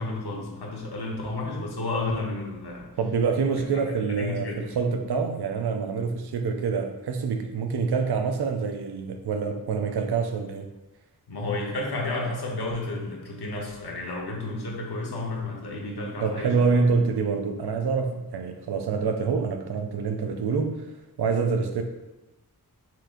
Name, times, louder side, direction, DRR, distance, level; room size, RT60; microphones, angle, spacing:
voice 1, 0.0-2.9 3.5-3.6 4.1-4.7 11.3-17.0, left 2 dB, 85° left, -2 dB, 1.0 m, -32 dB
voice 2, 3.0-10.7 16.2-20.8 21.2-21.8, right 5 dB, 85° right, 5 dB, 0.5 m, -26 dB
5.7 x 3.6 x 2.5 m, 1.0 s
wide cardioid pair, 80°, 38 cm